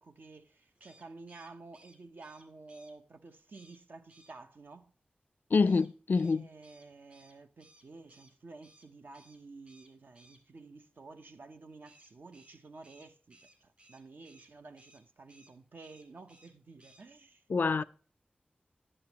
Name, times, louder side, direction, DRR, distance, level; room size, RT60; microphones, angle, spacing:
voice 1, 0.0-4.9 6.2-17.4, right 3 dB, 70° right, 0.8 m, -52 dB
sound 1, 0.7-2.9 3.5-3.8 4.1-4.3 5.6-8.3 8.6-8.9 9.1-9.4 9.7-10.4 11.8-14.5 14.8-15.0 15.3-15.5 15.8-16.5 16.8-17.0, right 1 dB, 40° right, 2.7 m, -61 dB
voice 2, 5.5-6.5 17.5-17.8, left 4 dB, 60° left, 0.3 m, -26 dB
10.0 x 9.7 x 2.9 m
wide cardioid pair, 75°, 3 cm